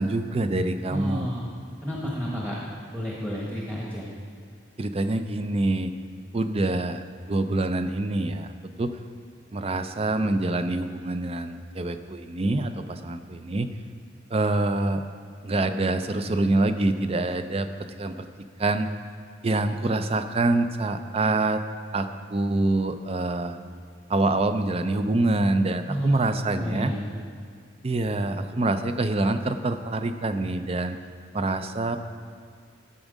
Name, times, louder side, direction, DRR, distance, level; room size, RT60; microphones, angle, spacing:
voice 1, 0.0-1.4 4.8-5.9 6.3-8.5 8.8-8.9 9.5-13.7 14.3-15.0 15.4-18.3 18.6-18.9 19.4-21.6 21.9-23.6 24.1-26.9 27.8-31.0 31.3-32.0, right 2 dB, 30° right, 9 dB, 0.5 m, -25 dB
voice 2, 0.9-1.5 1.8-2.6 2.9-4.1 25.9-27.2, equal, 10° right, -4 dB, 1.2 m, -31 dB
12.5 x 7.2 x 5.2 m, 2.2 s
head